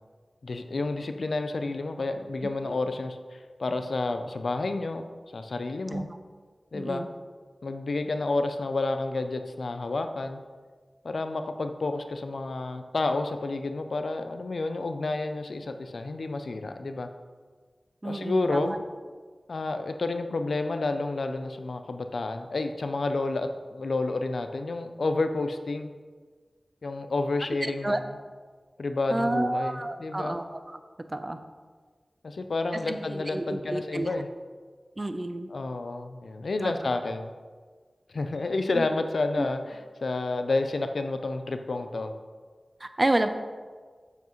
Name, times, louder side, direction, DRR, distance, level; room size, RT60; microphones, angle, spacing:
voice 1, 0.4-5.0 5.3-6.1 6.7-7.1 7.6-10.4 11.0-17.1 18.0-18.8 19.5-25.9 26.8-28.1 28.8-30.3 32.2-34.3 35.5-37.3 38.1-42.1, left 3 dB, 80° left, 7 dB, 0.5 m, -30 dB
voice 2, 2.4-2.8 5.9-6.1 6.7-7.1 18.0-18.8 27.4-28.0 29.1-30.8 31.1-31.4 32.9-34.1 35.0-35.5 36.6-36.7 38.7-38.9 39.4-39.5 42.8-43.3, right 1 dB, 30° right, 8 dB, 0.6 m, -30 dB
8.0 x 7.1 x 3.1 m, 1.5 s
cardioid pair, 50°, 0 cm